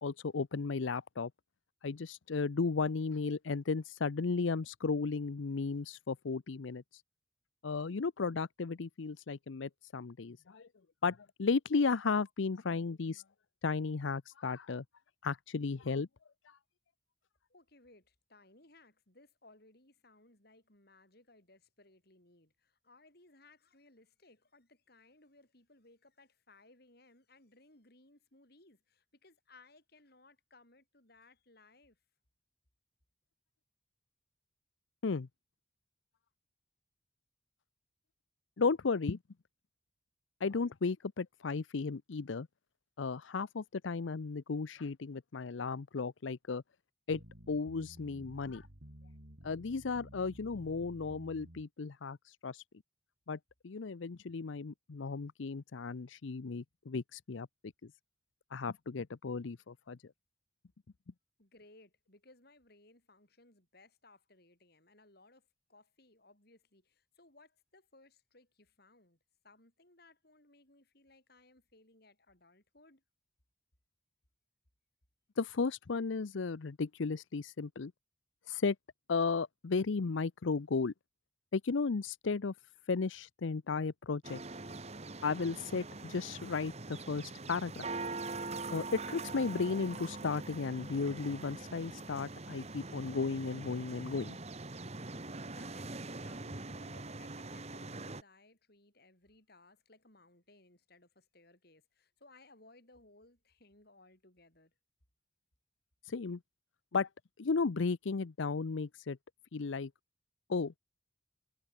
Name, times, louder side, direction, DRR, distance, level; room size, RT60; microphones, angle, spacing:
voice 1, 0.0-1.3 1.8-7.0 7.6-10.7 11.0-13.2 13.6-14.8 15.2-16.1 16.5-16.6 35.0-35.3 38.6-39.2 40.4-42.5 43.0-46.6 47.1-47.2 47.5-48.7 49.4-52.6 53.3-53.4 53.6-57.5 58.5-60.0 75.4-77.9 78.5-78.8 79.1-80.9 81.5-82.5 82.9-84.4 85.2-87.8 88.7-94.4 106.0-106.4 106.9-107.1 107.4-109.2 109.5-109.9 110.5-110.8, left 4 dB, 80° left, 0.6 m, -34 dB
voice 2, 17.5-32.0 61.4-69.2 69.4-73.0 95.0-104.7, left 2 dB, 55° left, 6.1 m, -63 dB
sound 1, 47.1-51.6, right 1 dB, 60° right, 3.6 m, -54 dB
sound 2, 84.2-98.2, right 3 dB, 35° right, 1.6 m, -43 dB
head